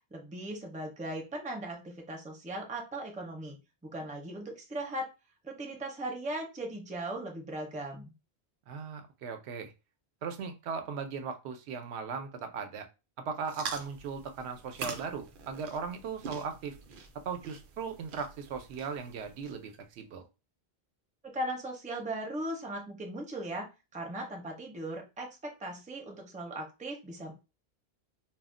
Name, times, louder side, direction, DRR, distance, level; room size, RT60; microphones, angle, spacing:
voice 1, 0.1-3.6 3.8-5.1 5.4-8.0 21.2-23.7 23.9-27.3, right 1 dB, 10° right, 2 dB, 0.4 m, -38 dB
voice 2, 8.7-9.7 10.2-12.9 13.2-16.8 17.2-20.2, right 5 dB, 90° right, 6 dB, 0.8 m, -38 dB
sound 1, 13.4-19.8, right 5 dB, 60° right, 0.6 m, -45 dB
2.3 x 2.0 x 3.6 m, 0.28 s
omnidirectional pair, 1.1 m